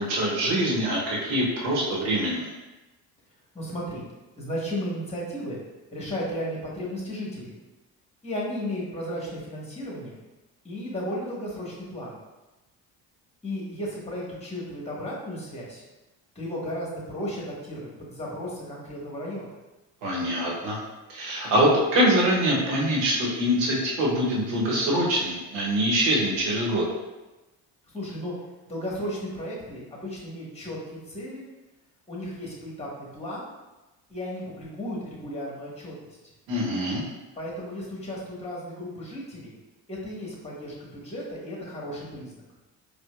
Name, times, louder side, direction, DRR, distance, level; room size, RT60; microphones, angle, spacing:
voice 1, 0.0-2.5 20.0-20.8 21.1-26.8 36.5-37.0, equal, 85° right, -4 dB, 1.0 m, -24 dB
voice 2, 3.5-4.0 4.4-5.6 5.9-7.5 8.2-10.2 10.6-12.2 13.4-15.9 16.3-19.5 27.9-28.3 28.6-31.4 32.1-33.5 34.1-35.9 37.3-39.6 39.9-42.4, equal, 15° left, -4 dB, 1.5 m, -34 dB
4.4 x 2.3 x 2.3 m, 1.1 s
hypercardioid pair, 55°, 48 cm